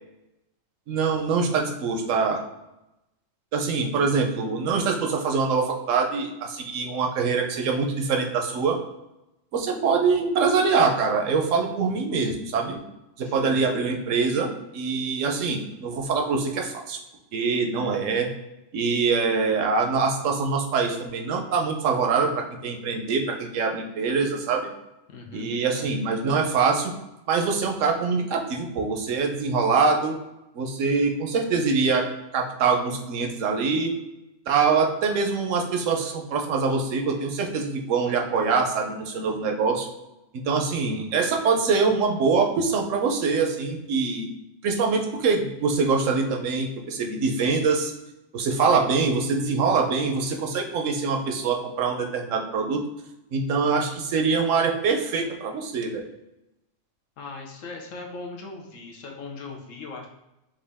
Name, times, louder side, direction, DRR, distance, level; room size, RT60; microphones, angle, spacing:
voice 1, 0.9-2.4 3.5-8.8 9.5-12.8 13.2-17.0 17.3-18.3 18.7-24.7 25.3-26.9 27.3-30.2 30.5-32.1 32.3-33.9 34.5-39.9 40.3-44.3 44.6-47.9 48.3-52.9 53.3-56.0, right 4 dB, 80° right, 3 dB, 1.1 m, -24 dB
voice 2, 11.8-12.1 13.2-13.6 17.7-18.1 25.1-25.9 40.8-41.1 57.2-60.1, left 3 dB, 85° left, 1 dB, 1.2 m, -40 dB
4.9 x 2.6 x 3.4 m, 0.92 s
omnidirectional pair, 1.3 m